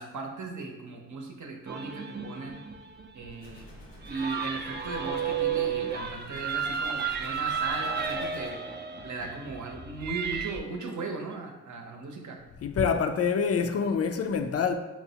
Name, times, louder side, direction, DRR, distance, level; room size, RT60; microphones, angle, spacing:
voice 1, 0.0-2.6 3.1-3.7 4.1-8.6 9.0-12.4, right 3 dB, 60° right, 0.7 m, -37 dB
sound 1, 1.7-10.6, right 6 dB, 30° right, 0.4 m, -33 dB
sound 2, 3.4-8.5, left 1 dB, 85° left, 1.3 m, -49 dB
voice 2, 12.6-14.7, left 6 dB, 45° left, 0.4 m, -26 dB
5.8 x 2.1 x 2.8 m
cardioid pair, 65°, 34 cm